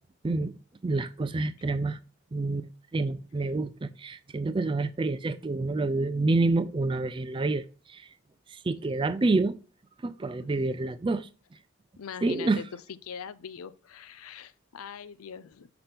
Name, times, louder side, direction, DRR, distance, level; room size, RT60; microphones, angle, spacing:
voice 1, 0.8-2.0 2.3-8.0 8.5-9.5 10.0-11.3 12.2-12.6, right 3 dB, 25° right, 0.3 m, -28 dB
voice 2, 12.0-12.6 13.0-15.7, left 7 dB, 85° left, 0.5 m, -42 dB
5.8 x 5.7 x 3.4 m
head